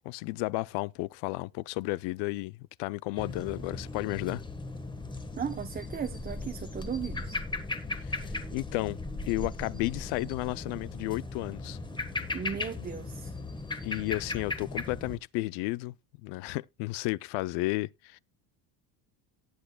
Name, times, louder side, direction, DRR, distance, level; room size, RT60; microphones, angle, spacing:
voice 1, 0.0-4.4 8.0-9.0 9.2-11.8 13.8-15.9 16.2-18.2, left 20 dB, 70° left, 0.6 m, -33 dB
sound 1, 3.2-15.2, left 2 dB, 10° left, 1.3 m, -37 dB
voice 2, 5.4-7.4 12.3-13.3, right 7 dB, 20° right, 0.8 m, -36 dB
18.5 x 6.3 x 2.2 m
cardioid pair, 130°, 43 cm